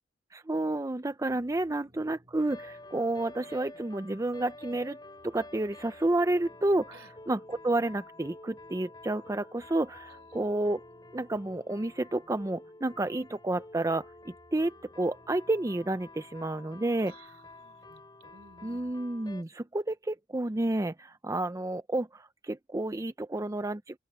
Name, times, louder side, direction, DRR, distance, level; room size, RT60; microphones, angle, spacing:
voice 1, 0.3-5.0 5.2-6.9 7.3-10.8 11.1-17.1 18.6-24.0, right 2 dB, 20° right, 0.5 m, -30 dB
sound 1, 1.3-18.9, equal, 35° right, 5.1 m, -64 dB
sound 2, 2.4-19.4, left 2 dB, 25° left, 7.6 m, -50 dB
voice 2, 10.0-10.5 17.0-18.8, right 2 dB, 75° right, 4.4 m, -57 dB
open air
head